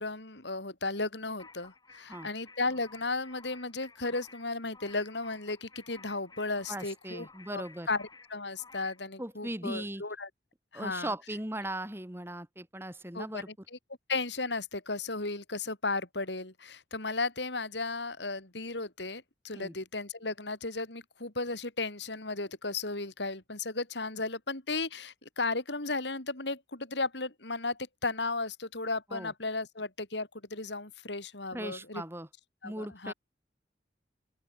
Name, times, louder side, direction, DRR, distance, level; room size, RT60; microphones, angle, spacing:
voice 1, 0.0-10.3 10.7-11.1 13.1-13.8 14.1-32.0 32.6-33.1, left 3 dB, 75° left, 4.0 m, -35 dB
sound 1, 1.4-9.1, left 4 dB, 20° left, 6.6 m, -55 dB
voice 2, 6.7-7.9 9.2-10.0 10.7-13.5 19.5-19.7 29.1-29.3 31.5-32.3 32.6-33.1, right 1 dB, 15° right, 3.5 m, -38 dB
open air
head